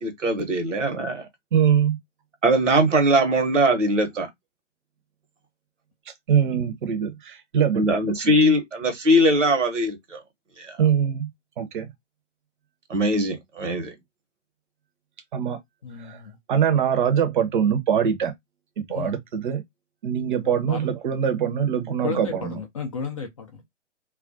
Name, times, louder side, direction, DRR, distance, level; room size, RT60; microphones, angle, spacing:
voice 1, 0.0-1.3 2.4-4.3 6.5-6.6 7.7-10.2 10.6-10.8 12.9-13.9, right 1 dB, 75° right, 1.0 m, -21 dB
voice 2, 1.5-2.0 6.3-7.9 10.8-11.3 11.6-11.9 15.3-15.6 16.0-16.2 16.5-18.3 18.9-19.6 20.0-22.6, right 8 dB, 45° right, 0.7 m, -23 dB
voice 3, 15.8-16.3 18.9-19.1 20.4-20.8 22.0-23.7, left 4 dB, 30° left, 0.4 m, -33 dB
2.3 x 2.1 x 2.5 m
figure-of-eight pair, 120°, 37 cm